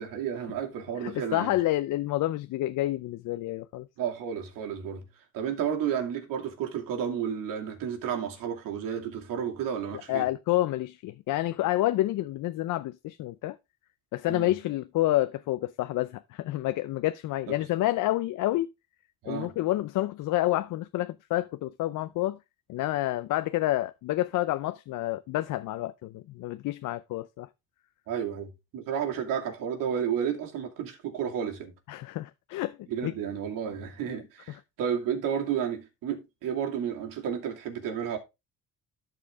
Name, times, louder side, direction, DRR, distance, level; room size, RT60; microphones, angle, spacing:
voice 1, 0.0-1.5 4.0-5.0 5.3-10.3 14.3-14.5 17.5-17.6 19.2-19.5 28.1-31.7 32.9-38.2, right 8 dB, 80° right, 2.5 m, -32 dB
voice 2, 1.0-3.9 10.1-13.6 14.1-18.7 19.3-22.4 22.7-27.5 31.9-32.8 33.0-33.1 34.1-34.2 34.5-34.6, left 15 dB, 70° left, 0.6 m, -29 dB
13.0 x 4.8 x 3.5 m
cardioid pair, 95°, 32 cm